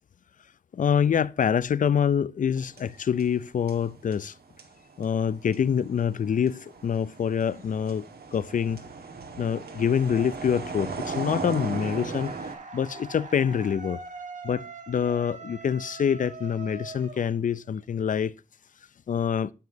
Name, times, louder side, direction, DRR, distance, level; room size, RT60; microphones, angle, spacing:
voice 1, 0.7-4.3 5.0-8.8 9.4-12.3 12.7-14.0 14.4-18.3 19.1-19.5, left 7 dB, 55° left, 0.4 m, -26 dB
sound 1, 2.6-12.6, right 4 dB, 80° right, 1.5 m, -37 dB
sound 2, 11.7-17.8, right 4 dB, 50° right, 1.3 m, -43 dB
9.3 x 7.3 x 2.7 m
wide cardioid pair, 155°, 16 cm